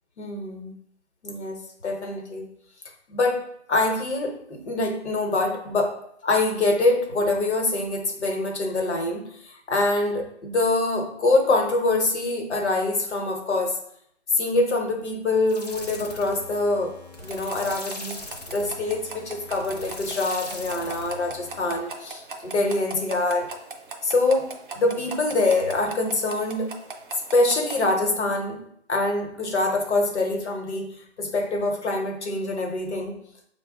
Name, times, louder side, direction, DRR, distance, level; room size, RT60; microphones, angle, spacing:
voice 1, 0.2-0.7 1.2-2.4 3.1-6.0 6.2-13.8 14.3-17.0 17.2-18.2 18.5-23.5 24.0-26.7 27.3-33.2, left 2 dB, 70° left, 2 dB, 1.0 m, -25 dB
sound 1, 15.5-21.8, left 2 dB, 35° left, 0.4 m, -40 dB
sound 2, 17.2-27.9, right 3 dB, 50° right, 0.5 m, -40 dB
5.1 x 2.3 x 3.6 m, 0.68 s
hypercardioid pair, 170°, 35 cm